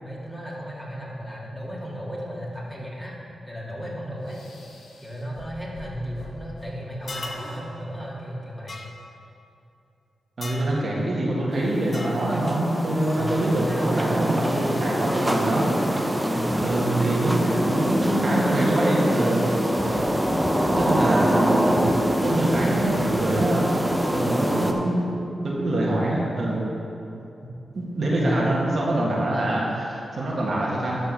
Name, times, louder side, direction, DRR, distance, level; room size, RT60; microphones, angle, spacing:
voice 1, 0.0-3.1 3.5-4.4 5.0-8.8 13.2-14.8 16.3-16.6 16.9-17.8 19.7-20.0 24.5-25.1 28.1-28.9, equal, 5° left, -5 dB, 2.4 m, -35 dB
sound 1, 4.2-6.7 7.0-7.6, left 3 dB, 85° left, 1.1 m, -44 dB
sound 2, 7.1-7.5 8.7-8.9 10.4-10.7 11.9-12.2, left 2 dB, 40° left, 0.9 m, -36 dB
voice 2, 10.4-15.7 16.6-19.4 20.8-23.7 24.1-25.1 25.4-26.6 27.8-31.0, right 1 dB, 60° right, -5 dB, 1.9 m, -25 dB
sound 3, 11.5-24.7, equal, 10° right, 0.8 m, -24 dB
12.0 x 4.5 x 5.6 m, 2.7 s
cardioid pair, 55°, 0 cm